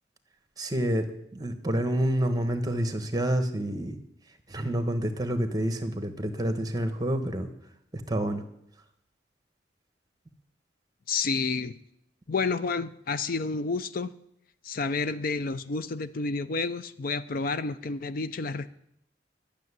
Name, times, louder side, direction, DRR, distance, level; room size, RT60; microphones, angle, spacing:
voice 1, 0.6-4.0 4.5-7.5 8.1-8.4, right 1 dB, 20° right, 8 dB, 1.2 m, -28 dB
voice 2, 11.1-11.8 12.3-14.1 14.6-18.7, left 4 dB, 55° left, 13 dB, 0.5 m, -30 dB
12.0 x 6.9 x 9.7 m, 0.76 s
head